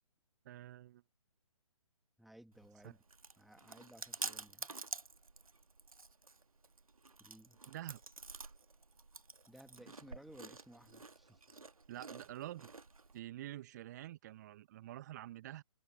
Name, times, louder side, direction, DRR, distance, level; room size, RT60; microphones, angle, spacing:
voice 1, 0.4-1.0 2.8-2.9 7.7-8.0 11.9-12.7 13.1-15.6, right 14 dB, 30° right, 1.1 m, -47 dB
voice 2, 2.2-3.0 3.4-4.7 7.2-7.6 9.5-11.4, right 1 dB, ahead, 2.2 m, -58 dB
Chewing mastication, 2.5-13.2, right 3 dB, 75° right, 1.7 m, -49 dB
figure-of-eight pair, 135°, 18 cm